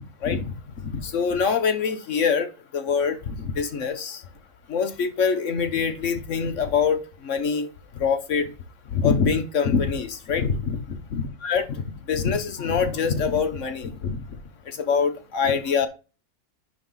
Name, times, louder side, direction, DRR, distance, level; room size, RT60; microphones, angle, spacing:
voice 1, 0.2-0.5 0.9-4.2 4.7-7.0 7.2-7.7 7.9-8.5 8.9-14.2 14.7-15.9, left 6 dB, 55° left, 1.3 m, -24 dB
10.5 x 3.6 x 3.9 m
omnidirectional pair, 1.7 m